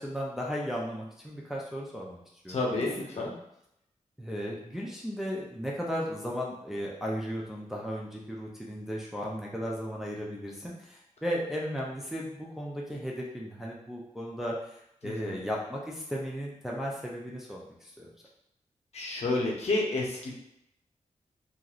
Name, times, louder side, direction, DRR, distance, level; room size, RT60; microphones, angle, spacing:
voice 1, 0.0-2.2 2.4-2.6 3.2-3.4 4.2-18.1, equal, 5° right, -3 dB, 0.4 m, -35 dB
voice 2, 2.5-3.3 15.0-15.4 18.9-20.4, left 2 dB, 55° left, -2 dB, 0.7 m, -30 dB
2.9 x 2.5 x 2.4 m, 0.78 s
wide cardioid pair, 175°, 13 cm